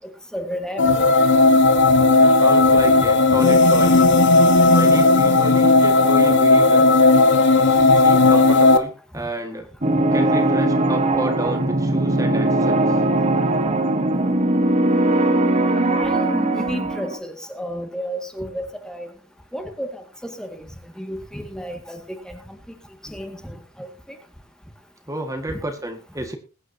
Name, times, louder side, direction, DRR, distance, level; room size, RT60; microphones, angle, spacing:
voice 1, 0.3-1.1 3.3-3.4 16.0-19.1 19.5-20.7 21.0-22.4 23.0-23.9 25.5-25.6, equal, 5° left, 5 dB, 1.9 m, -32 dB
sound 1, 0.8-8.8, left 3 dB, 55° left, 1.3 m, -14 dB
voice 2, 2.2-4.1 4.7-7.0 7.6-9.7 10.1-12.9 25.1-26.4, right 1 dB, 15° right, 4 dB, 1.8 m, -30 dB
sound 2, 9.8-17.2, right 2 dB, 30° right, 1.4 m, -20 dB
21.0 x 10.0 x 2.8 m, 0.32 s
head